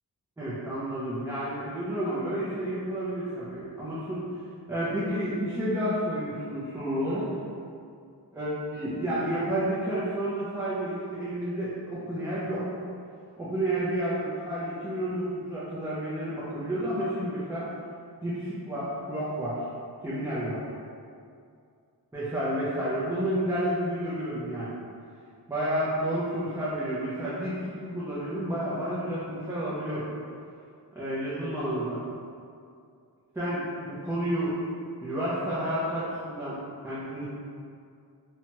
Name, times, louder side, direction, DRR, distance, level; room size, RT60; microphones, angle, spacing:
voice 1, 0.4-4.2 4.7-7.3 8.3-12.6 13.4-17.7 18.2-19.6 20.0-20.6 22.1-24.7 25.5-30.1 30.9-32.0 33.3-34.5 35.0-36.6 36.8-37.2, right 1 dB, 5° right, -10 dB, 0.4 m, -30 dB
2.8 x 2.2 x 2.8 m, 2.3 s
wide cardioid pair, 115°, 41 cm